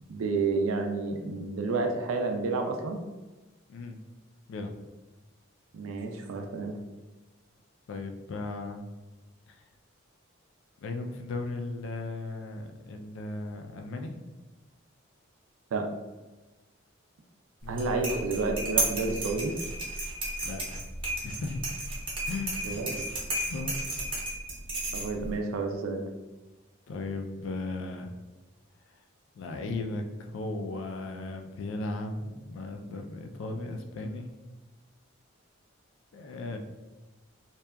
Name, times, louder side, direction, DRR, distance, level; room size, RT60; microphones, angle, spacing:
voice 1, 0.1-3.0 5.7-6.8 15.7-15.9 17.7-19.5 22.6-23.1 24.9-26.1, right 3 dB, 85° right, 4 dB, 0.4 m, -30 dB
voice 2, 7.9-8.8 9.5-9.6 10.8-14.1 17.6-17.8 20.4-20.8 21.2-21.6 22.3-22.7 23.5-23.7 26.9-28.1 29.4-34.3 36.1-36.6, left 2 dB, 65° left, 5 dB, 0.3 m, -36 dB
sound 1, 17.6-25.4, right 2 dB, 25° right, 0.6 m, -33 dB
2.7 x 2.2 x 2.2 m, 1.2 s
head